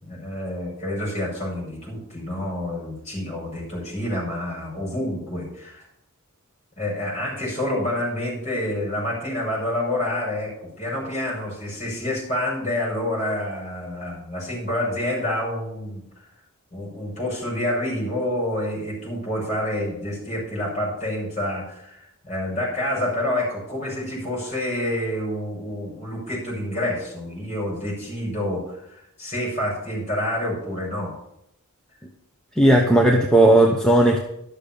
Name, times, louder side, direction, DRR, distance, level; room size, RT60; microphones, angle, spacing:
voice 1, 0.0-5.8 6.8-16.0 16.7-31.1, left 1 dB, 30° left, -4 dB, 6.0 m, -28 dB
voice 2, 32.6-34.2, right 1 dB, 5° left, 0 dB, 0.8 m, -15 dB
12.0 x 6.7 x 7.0 m, 0.78 s
head